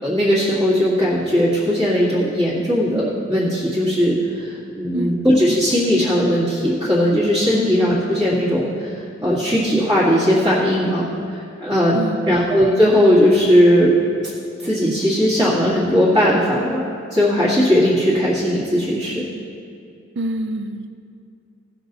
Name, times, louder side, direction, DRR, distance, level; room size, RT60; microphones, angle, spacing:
voice 1, 0.0-4.2 4.4-11.1 11.3-13.9 14.6-19.2, equal, 20° right, -11 dB, 2.0 m, -18 dB
voice 2, 11.9-12.3 20.2-20.9, right 1 dB, 60° right, 8 dB, 0.6 m, -26 dB
16.5 x 6.3 x 4.0 m, 2.4 s
head